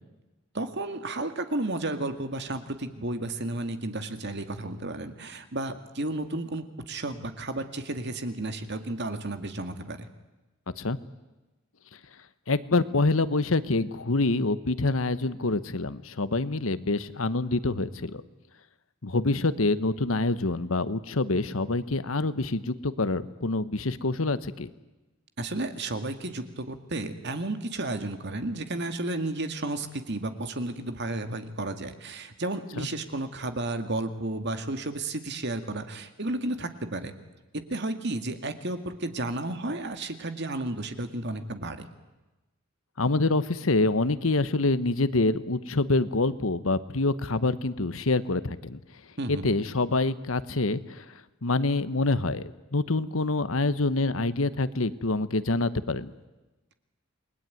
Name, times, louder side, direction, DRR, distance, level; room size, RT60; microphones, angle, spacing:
voice 1, 0.5-10.1 25.4-37.1 37.7-41.9 49.2-49.5, right 2 dB, 55° right, 8 dB, 2.1 m, -32 dB
voice 2, 12.5-18.2 19.0-24.7 32.8-32.9 43.0-48.8 49.3-51.0 51.4-56.1, left 2 dB, 75° left, 14 dB, 1.2 m, -26 dB
29.0 x 21.0 x 9.3 m, 1.1 s
head